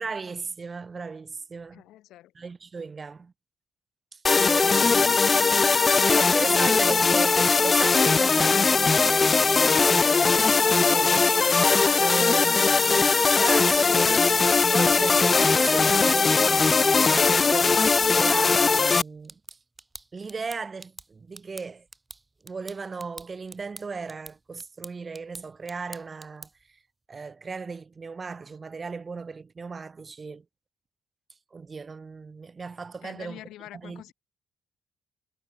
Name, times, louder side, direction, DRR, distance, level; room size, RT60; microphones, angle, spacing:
voice 1, 0.0-1.8 2.4-3.3 4.1-4.2 4.5-5.2 6.0-11.7 12.0-17.8 18.1-19.3 20.1-21.8 22.4-26.5 27.1-30.4 31.5-33.4 33.8-34.0, right 4 dB, 35° right, 0.7 m, -36 dB
voice 2, 1.7-2.3 33.0-34.1, left 14 dB, 85° left, 2.3 m, -46 dB
sound 1, 4.2-19.0, left 4 dB, 30° left, 0.3 m, -20 dB
sound 2, 11.3-26.7, right 2 dB, 20° right, 1.4 m, -48 dB
cardioid pair, 90°, 0 cm